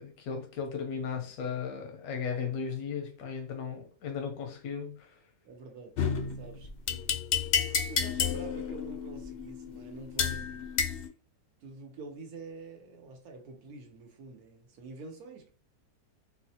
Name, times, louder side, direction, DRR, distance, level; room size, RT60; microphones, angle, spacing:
voice 1, 0.0-5.2, left 6 dB, 90° left, 1.1 m, -36 dB
voice 2, 5.4-6.0 6.4-10.7 11.6-15.5, right 3 dB, 90° right, 1.4 m, -47 dB
sound 1, 6.0-11.1, left 7 dB, 75° left, 0.5 m, -31 dB
4.1 x 2.1 x 2.7 m
omnidirectional pair, 1.5 m